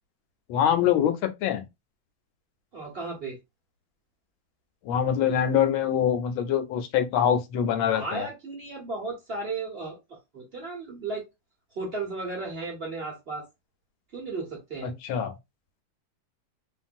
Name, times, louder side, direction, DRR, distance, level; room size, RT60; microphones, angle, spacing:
voice 1, 0.5-1.6 4.9-8.3 14.8-15.3, left 9 dB, 85° left, 1.4 m, -24 dB
voice 2, 2.7-3.4 7.8-10.0 10.3-11.2 11.7-13.4 14.1-14.9, right 3 dB, 45° right, 0.7 m, -34 dB
2.9 x 2.5 x 2.4 m
omnidirectional pair, 2.2 m